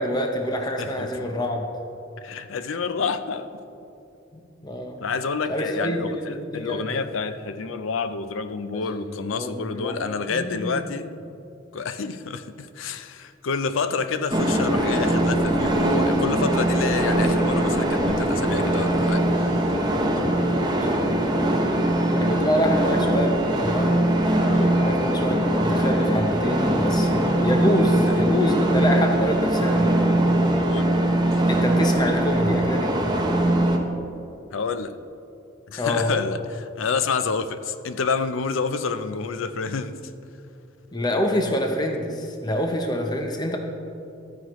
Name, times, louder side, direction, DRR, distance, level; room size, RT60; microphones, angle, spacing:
voice 1, 0.0-1.7 4.3-5.0 5.5-6.9 8.7-10.8 20.7-21.2 22.1-30.2 31.5-33.0 35.8-36.1 40.9-43.6, left 1 dB, 20° left, 0.7 m, -27 dB
voice 2, 0.8-1.4 2.2-3.6 5.0-11.1 11.7-19.8 24.5-24.8 28.0-28.2 30.6-31.4 34.5-35.0 35.7-40.1, left 5 dB, 90° left, 0.5 m, -29 dB
sound 1, 14.3-33.8, right 1 dB, 20° right, 0.8 m, -21 dB
13.0 x 9.5 x 3.1 m
head